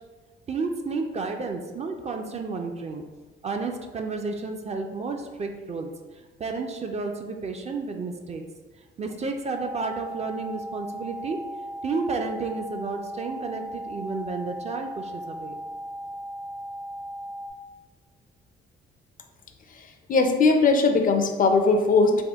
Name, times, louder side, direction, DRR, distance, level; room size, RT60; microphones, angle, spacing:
voice 1, 0.5-3.0 3.4-5.9 6.2-8.4 9.0-11.4 11.8-15.6, right 4 dB, 35° right, 3 dB, 0.4 m, -31 dB
sound 1, 9.5-17.5, equal, 75° right, 0.7 m, -37 dB
voice 2, 20.1-22.2, left 3 dB, 45° left, 5 dB, 0.4 m, -19 dB
3.5 x 2.2 x 3.4 m, 1.3 s
cardioid pair, 90°, 20 cm